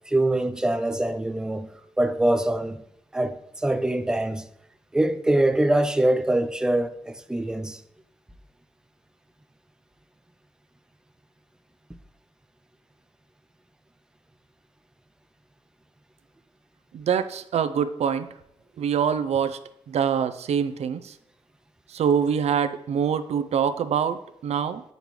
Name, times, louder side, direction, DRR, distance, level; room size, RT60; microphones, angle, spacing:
voice 1, 0.1-1.7 2.0-2.8 3.1-4.5 4.9-7.8, right 1 dB, 5° right, 0.4 m, -24 dB
voice 2, 16.9-18.3 18.8-19.6 19.9-21.1 21.9-24.8, right 7 dB, 80° right, 0.5 m, -25 dB
9.0 x 5.2 x 3.1 m
wide cardioid pair, 135°, 11 cm